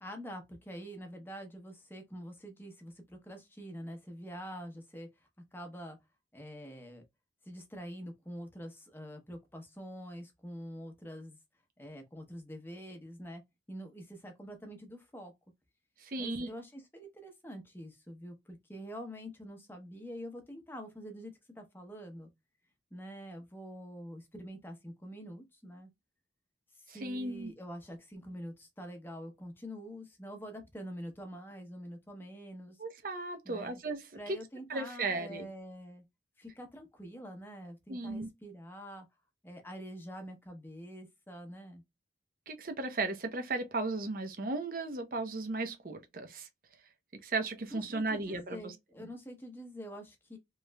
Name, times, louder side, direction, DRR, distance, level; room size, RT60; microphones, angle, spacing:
voice 1, 0.0-5.1 5.5-6.0 6.3-7.0 7.4-11.4 11.8-13.4 13.7-15.3 16.2-22.3 22.9-25.9 26.7-32.8 33.4-33.8 34.1-36.0 36.4-39.1 39.4-41.8 47.7-50.4, equal, 10° left, 0.7 m, -46 dB
voice 2, 16.0-16.5 26.9-27.5 32.8-34.4 34.7-35.5 37.9-38.3 42.5-46.5 47.2-48.7, right 3 dB, 50° right, 0.6 m, -36 dB
3.1 x 2.9 x 2.2 m
head